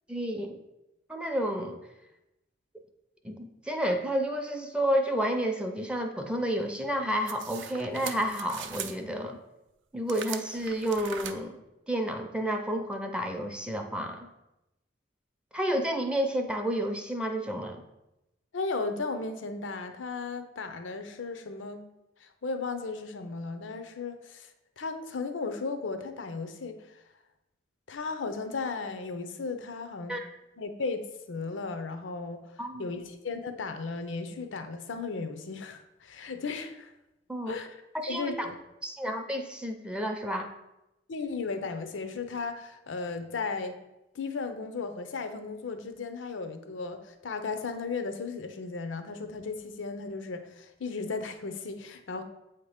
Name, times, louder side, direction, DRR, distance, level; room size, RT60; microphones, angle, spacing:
voice 1, 0.1-0.6 1.1-1.8 3.2-9.4 9.9-11.6 11.9-14.3 15.5-17.8 30.1-30.3 32.6-32.9 37.3-37.5 37.9-38.5 38.8-40.5, equal, 5° right, 5 dB, 0.5 m, -30 dB
sound 1, 7.3-9.0 10.1-11.3, right 8 dB, 80° right, 0.5 m, -40 dB
voice 2, 18.5-21.8 22.2-24.5 24.8-27.0 27.9-30.2 30.6-36.9 37.5-37.8 38.1-38.6 41.1-43.8 44.1-52.2, left 4 dB, 90° left, 8 dB, 0.6 m, -35 dB
7.8 x 2.9 x 4.9 m, 0.94 s
head